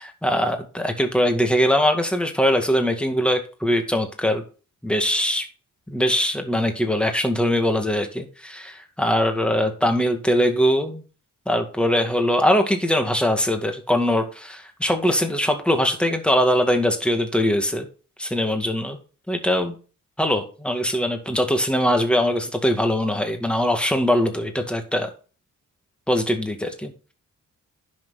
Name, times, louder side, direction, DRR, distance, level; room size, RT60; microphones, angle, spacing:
voice 1, 0.0-4.4 4.8-5.5 5.9-11.0 11.5-17.9 18.2-19.0 19.3-19.7 20.2-25.1 26.1-26.9, equal, 5° left, 4 dB, 2.1 m, -22 dB
10.5 x 6.4 x 4.2 m, 0.35 s
cardioid pair, 85°, 31 cm